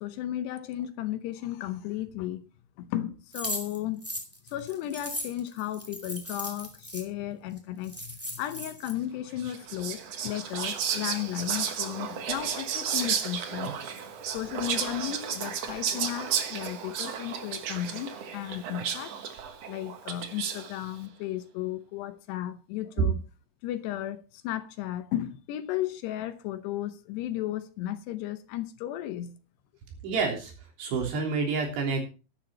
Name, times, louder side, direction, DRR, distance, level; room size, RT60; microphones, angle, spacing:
voice 1, 0.0-2.5 2.8-4.0 4.4-13.7 14.3-19.2 19.7-23.2 23.6-29.4, left 12 dB, 75° left, 2.9 m, -34 dB
sound 1, 3.3-7.0 7.6-7.7 7.8-8.9, equal, 5° right, 1.1 m, -37 dB
Whispering, 9.4-20.8, right 7 dB, 85° right, 1.4 m, -33 dB
voice 2, 30.0-30.5 30.8-32.0, right 4 dB, 70° right, 5.4 m, -28 dB
12.0 x 11.5 x 4.3 m
omnidirectional pair, 5.1 m